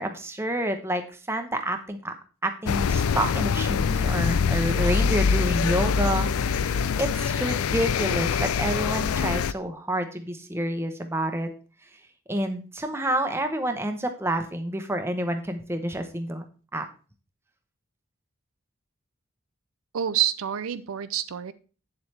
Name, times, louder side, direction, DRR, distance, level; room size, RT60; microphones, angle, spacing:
voice 1, 0.0-2.1 2.4-11.5 12.3-16.4 16.7-16.9, right 1 dB, 10° right, 6 dB, 0.8 m, -28 dB
sound 1, 2.7-9.5, left 6 dB, 80° left, 0.4 m, -24 dB
voice 2, 19.9-21.5, right 11 dB, 75° right, 13 dB, 0.5 m, -27 dB
8.6 x 7.3 x 3.3 m, 0.37 s
head